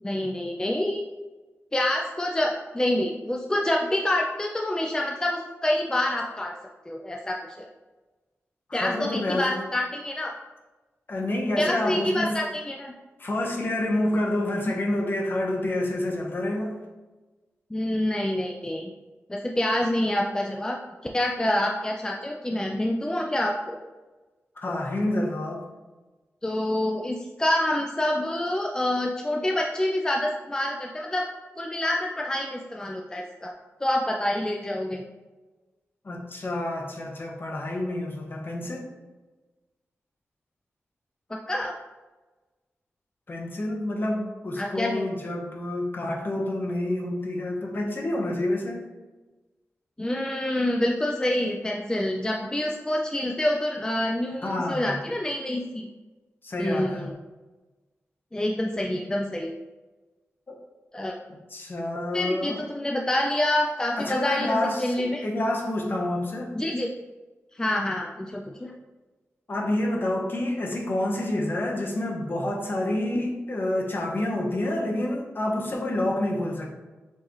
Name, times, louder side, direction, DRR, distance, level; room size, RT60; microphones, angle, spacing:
voice 1, 0.0-1.0 1.7-6.6 6.9-7.7 8.7-10.3 11.6-12.9 14.7-14.8 17.7-18.9 19.3-20.8 21.1-23.8 26.4-31.3 31.6-33.5 33.8-35.0 41.3-41.7 44.6-45.0 50.0-55.9 56.6-57.1 58.3-59.5 60.9-61.1 62.1-65.2 66.6-66.9 67.5-68.7, left 1 dB, 15° left, 0 dB, 0.4 m, -27 dB
voice 2, 8.7-9.6 11.1-12.4 13.2-16.8 24.6-25.6 36.0-38.9 43.3-48.9 54.4-55.0 56.4-57.1 60.5-60.6 61.5-62.6 64.0-66.6 69.5-76.7, left 1 dB, 45° left, 0 dB, 0.9 m, -28 dB
4.4 x 3.2 x 2.9 m, 1.2 s
cardioid pair, 70°, 5 cm